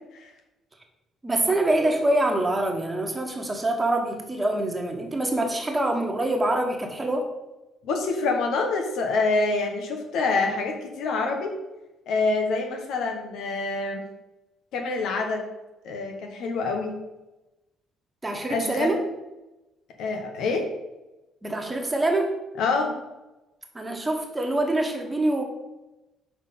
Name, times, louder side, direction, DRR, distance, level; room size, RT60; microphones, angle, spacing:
voice 1, 1.2-7.3 18.2-19.0 21.4-22.4 23.7-25.4, right 1 dB, 20° right, 3 dB, 1.4 m, -25 dB
voice 2, 7.8-11.5 12.1-14.0 14.7-15.4 15.8-16.9 18.5-18.9 20.0-20.7 22.6-23.0, left 3 dB, 75° left, 4 dB, 1.2 m, -26 dB
6.1 x 4.4 x 5.6 m, 1.0 s
supercardioid pair, 75°, 0 cm